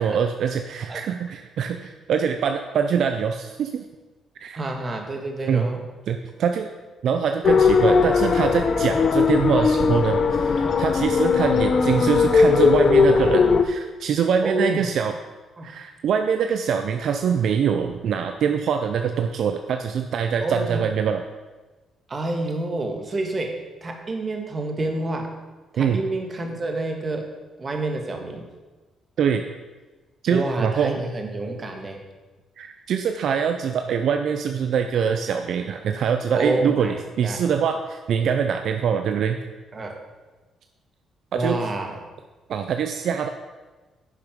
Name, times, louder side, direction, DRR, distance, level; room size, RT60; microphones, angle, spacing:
voice 1, 0.0-3.8 4.4-4.6 5.5-5.7 6.1-6.7 7.0-15.1 15.6-21.2 25.8-26.0 29.2-29.4 30.2-31.0 32.6-39.4 41.3-41.6 42.5-43.3, right 7 dB, 70° right, 6 dB, 0.6 m, -24 dB
voice 2, 4.5-5.8 14.4-14.9 15.6-15.7 20.4-20.8 22.1-25.4 25.7-27.3 27.6-28.5 30.3-32.0 36.3-37.4 39.7-40.0 41.3-42.0, right 2 dB, 35° right, 3 dB, 1.7 m, -28 dB
sound 1, 7.4-13.6, left 5 dB, 50° left, 0.8 m, -18 dB
10.5 x 6.7 x 5.2 m, 1.2 s
cardioid pair, 90°, 0 cm